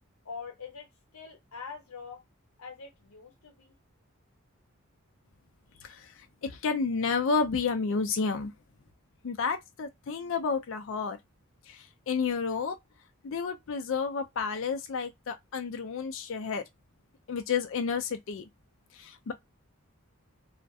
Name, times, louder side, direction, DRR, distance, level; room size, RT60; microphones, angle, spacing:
voice 1, 0.2-0.9 1.1-2.2 2.6-3.7, left 5 dB, 85° left, 0.9 m, -43 dB
voice 2, 6.4-8.5 9.2-11.2 11.7-11.8 12.1-12.8 13.2-16.6 17.3-18.4 19.0-19.3, left 5 dB, 65° left, 0.4 m, -30 dB
2.3 x 2.1 x 2.6 m
head